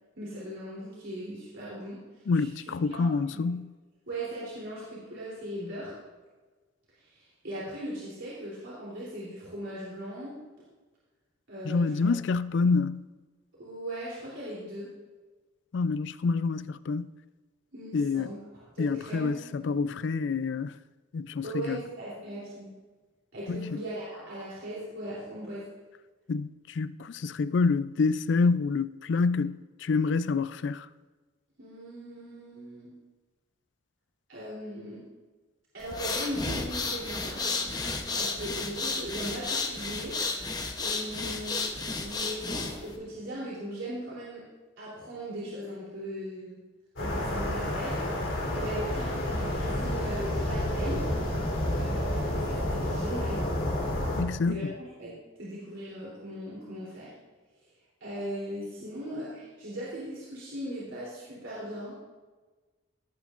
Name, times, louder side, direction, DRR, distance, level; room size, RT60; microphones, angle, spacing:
voice 1, 0.2-2.0 2.4-3.4 4.1-5.9 7.0-10.4 11.5-12.1 13.6-14.9 17.7-18.4 18.7-19.4 21.4-22.7 23.3-25.6 31.6-32.9 34.3-35.0 35.7-37.5 38.1-40.2 40.8-44.4 44.8-46.6 47.0-51.0 51.7-53.4 54.5-57.1 58.0-62.1, right 1 dB, 80° right, 3.3 m, -39 dB
voice 2, 2.3-3.7 11.6-13.0 15.7-17.1 17.9-18.3 18.8-20.8 21.1-21.8 23.5-23.8 26.3-30.9 54.2-54.7, left 4 dB, 65° left, 0.4 m, -27 dB
sound 1, 35.8-42.9, left 3 dB, 20° left, 0.8 m, -32 dB
sound 2, 47.0-54.2, left 1 dB, 90° left, 3.5 m, -30 dB
17.5 x 8.9 x 2.5 m
head